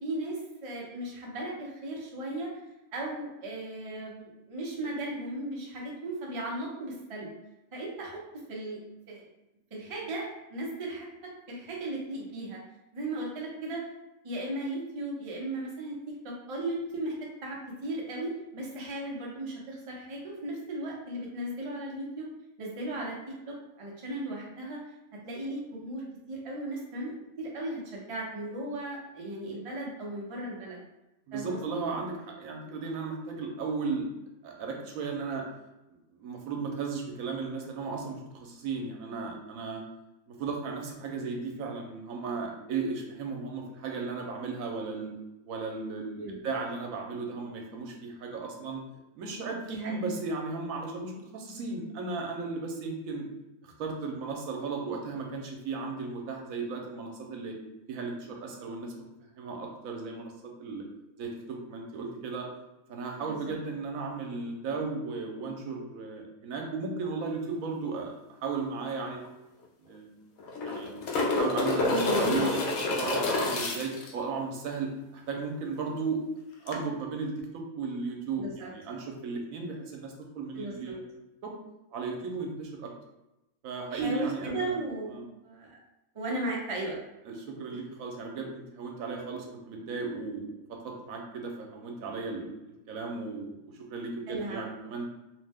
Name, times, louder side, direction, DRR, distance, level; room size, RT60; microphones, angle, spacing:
voice 1, 0.0-2.5 2.9-7.3 7.7-8.2 8.5-8.8 9.1-9.2 9.7-12.6 12.9-13.8 14.2-17.1 17.4-22.3 22.6-23.2 23.5-24.8 25.2-30.8 31.3-31.6 46.2-46.4 49.7-50.0 63.2-63.5 71.9-72.5 78.3-78.7 80.5-80.9 83.9-85.8 86.1-87.0 94.3-94.6, right 1 dB, 40° right, -3 dB, 0.4 m, -36 dB
voice 2, 31.3-34.1 34.4-35.4 35.9-39.8 40.3-45.1 45.4-48.8 49.2-53.2 53.6-57.6 57.9-60.8 61.2-62.5 62.9-69.3 69.9-70.1 70.6-70.9 71.3-72.6 73.0-76.2 76.6-81.0 81.4-81.5 81.9-82.9 83.6-84.8 85.1-85.2 87.2-92.5 92.9-95.1, right 4 dB, 80° right, 1 dB, 1.0 m, -35 dB
sound 1, 68.9-69.0 69.2-69.3 70.4-74.1 76.7-76.8, left 2 dB, 75° left, 1.0 m, -28 dB
2.8 x 2.1 x 3.4 m, 0.94 s
omnidirectional pair, 1.4 m